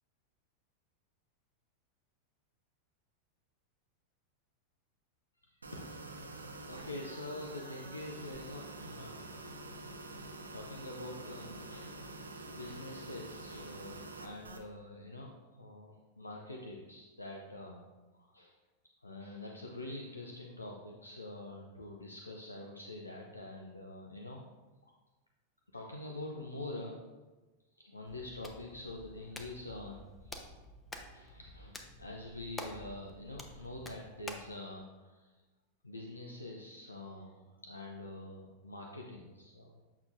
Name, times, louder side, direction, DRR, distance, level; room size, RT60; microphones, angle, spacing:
voice 1, 5.6-6.0 6.7-9.2 10.5-17.8 18.2-18.6 19.0-24.4 24.8-24.9 25.7-27.0 27.7-30.3 31.1-35.3 35.8-39.8, left 2 dB, 80° left, 0 dB, 0.6 m, -46 dB
sound 1, 5.6-14.6, right 2 dB, 75° right, 0.7 m, -47 dB
Hands, 28.1-34.5, left 2 dB, 15° left, 0.8 m, -49 dB
8.2 x 6.4 x 2.6 m, 1.2 s
figure-of-eight pair, 90°, 0 cm